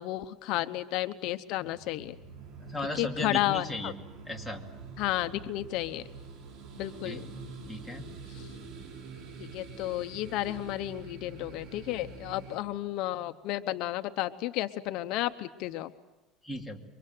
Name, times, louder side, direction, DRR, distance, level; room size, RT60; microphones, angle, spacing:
voice 1, 0.0-2.2 2.9-3.9 5.0-6.1 6.8-7.2 8.3-8.5 9.4-15.9, left 15 dB, 60° left, 9 dB, 0.9 m, -32 dB
sound 1, 1.6-12.6, right 4 dB, 55° right, 5.3 m, -46 dB
voice 2, 2.7-4.0 4.3-4.6 7.0-7.2 7.7-8.1 16.4-16.8, left 1 dB, ahead, -1 dB, 2.5 m, -36 dB
28.5 x 24.0 x 7.8 m, 1.1 s
cardioid pair, 160°, 0 cm